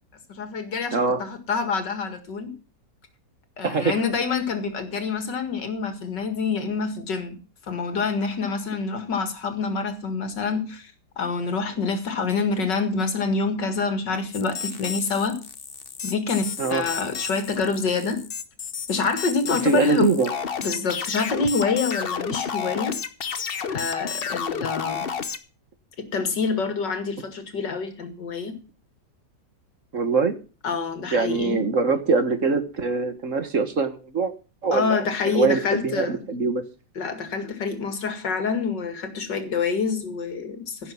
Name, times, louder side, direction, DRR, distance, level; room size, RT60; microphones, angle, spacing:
voice 1, 0.3-2.5 3.6-7.4 7.7-15.4 16.0-18.2 18.9-20.1 20.6-23.0 23.7-25.1 26.0-28.6 30.6-31.6 34.7-36.2 37.0-40.9, left 4 dB, 85° left, 2.7 m, -27 dB
voice 2, 0.9-1.2 3.6-4.0 16.6-16.8 19.4-20.3 29.9-30.4 31.1-34.3 34.6-35.0 35.3-36.6, right 4 dB, 50° right, 1.7 m, -23 dB
sound 1, 14.3-25.4, left 6 dB, 40° left, 0.9 m, -31 dB
15.5 x 6.9 x 6.0 m
omnidirectional pair, 1.9 m